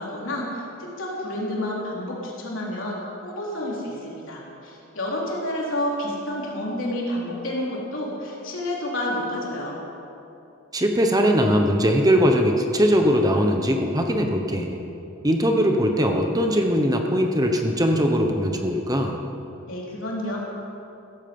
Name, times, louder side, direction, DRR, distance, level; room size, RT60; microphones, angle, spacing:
voice 1, 0.0-9.8 19.6-20.4, left 1 dB, 65° left, -4 dB, 3.9 m, -29 dB
voice 2, 10.7-14.8 15.2-19.2, equal, 20° right, 3 dB, 1.0 m, -20 dB
16.0 x 14.5 x 5.5 m, 2.9 s
head